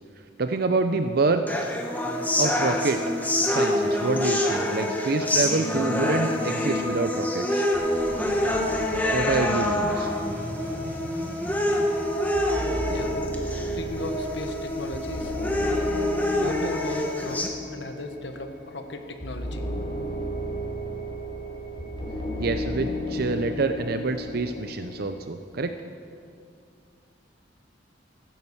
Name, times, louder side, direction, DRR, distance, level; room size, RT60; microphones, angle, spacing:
voice 1, 0.4-1.4 2.4-3.0 3.5-7.7 9.1-10.1 22.4-25.7, right 3 dB, 55° right, 8 dB, 0.6 m, -26 dB
sound 1, 1.5-17.5, left 1 dB, 10° left, 1.2 m, -26 dB
sound 2, 7.7-14.3, equal, 10° right, 3.5 m, -40 dB
sound 3, 10.5-25.1, left 1 dB, 30° left, 3.3 m, -34 dB
voice 2, 13.7-15.4 16.4-19.6, left 2 dB, 65° left, 6 dB, 1.2 m, -36 dB
15.0 x 9.7 x 7.2 m, 2.3 s
head